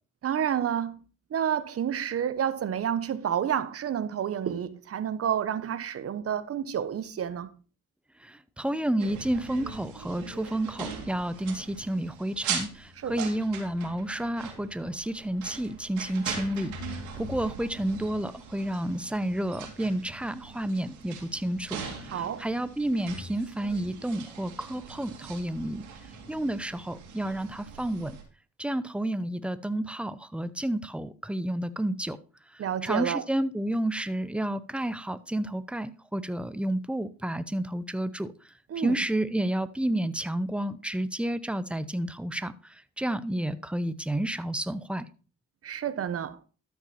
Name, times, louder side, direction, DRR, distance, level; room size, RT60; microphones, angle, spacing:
voice 1, 0.2-1.0 1.3-7.5 13.0-13.3 22.1-22.4 32.6-33.2 38.7-39.0 45.6-46.4, right 9 dB, 55° right, 1.0 m, -29 dB
voice 2, 8.2-25.9 26.3-28.2 28.6-32.2 32.5-38.3 38.8-45.1, right 1 dB, 5° right, 0.8 m, -31 dB
sound 1, 9.0-28.2, right 5 dB, 90° right, 2.8 m, -41 dB
13.0 x 6.0 x 4.3 m
cardioid pair, 75°, 29 cm